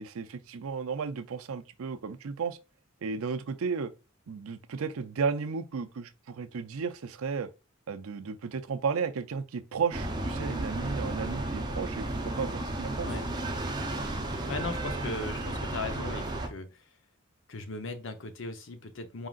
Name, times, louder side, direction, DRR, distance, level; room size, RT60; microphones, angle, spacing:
voice 1, 0.0-2.6 3.0-3.9 4.3-7.5 7.9-13.1, right 5 dB, 85° right, 0.5 m, -34 dB
sound 1, 9.9-16.5, right 1 dB, 20° right, 0.6 m, -33 dB
voice 2, 14.5-16.9 17.5-19.3, left 3 dB, 60° left, 0.8 m, -38 dB
4.8 x 3.7 x 2.4 m
head